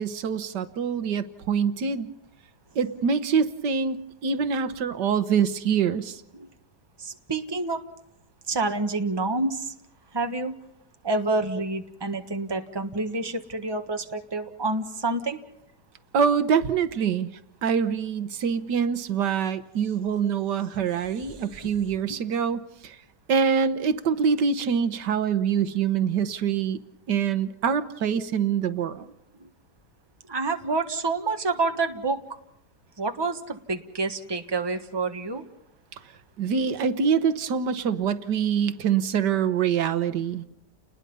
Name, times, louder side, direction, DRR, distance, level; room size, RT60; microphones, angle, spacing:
voice 1, 0.0-2.1 2.7-6.2 16.1-17.3 17.6-23.0 23.3-26.8 27.1-29.0 36.4-40.4, right 7 dB, 80° right, 12 dB, 1.7 m, -25 dB
voice 2, 7.0-7.8 8.5-9.7 10.1-10.5 11.0-15.4 22.1-22.2 30.3-32.2 33.0-35.4, right 3 dB, 15° right, 6 dB, 1.4 m, -28 dB
30.0 x 20.5 x 5.5 m, 0.76 s
omnidirectional pair, 1.8 m